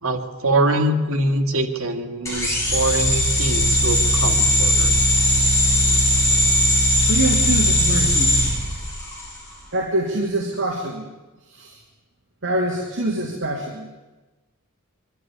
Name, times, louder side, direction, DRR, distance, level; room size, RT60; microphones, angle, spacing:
voice 1, 0.0-5.0, right 1 dB, 80° right, 4 dB, 2.3 m, -23 dB
sound 1, 2.3-9.4, left 1 dB, 15° left, 6.2 m, -19 dB
voice 2, 7.1-8.4 9.7-11.0 11.5-11.8 12.4-13.9, right 1 dB, 60° right, -1 dB, 2.7 m, -25 dB
23.5 x 12.5 x 9.7 m, 1.2 s
head